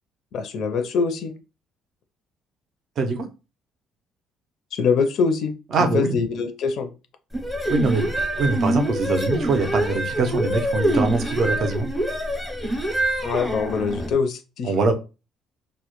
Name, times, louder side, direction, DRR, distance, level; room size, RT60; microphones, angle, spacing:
voice 1, 0.3-1.3 4.7-5.5 5.9-6.9 13.2-14.7, left 5 dB, 55° left, 8 dB, 0.4 m, -23 dB
voice 2, 5.7-6.1 7.7-8.1 8.4-11.9 14.6-14.9, right 3 dB, 45° right, 5 dB, 0.5 m, -23 dB
sound 1, 7.3-14.1, right 1 dB, ahead, 0.5 m, -25 dB
2.1 x 2.1 x 2.9 m, 0.30 s
cardioid pair, 145°, 0 cm